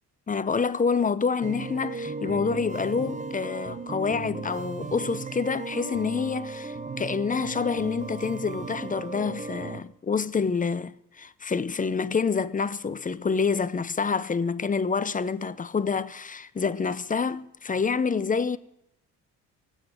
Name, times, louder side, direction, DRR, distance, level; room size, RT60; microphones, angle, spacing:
voice 1, 0.3-18.6, left 5 dB, 25° left, 0.8 m, -27 dB
sound 1, 1.4-9.8, right 4 dB, 25° right, 1.2 m, -36 dB
16.5 x 9.2 x 9.1 m
cardioid pair, 90°, 30 cm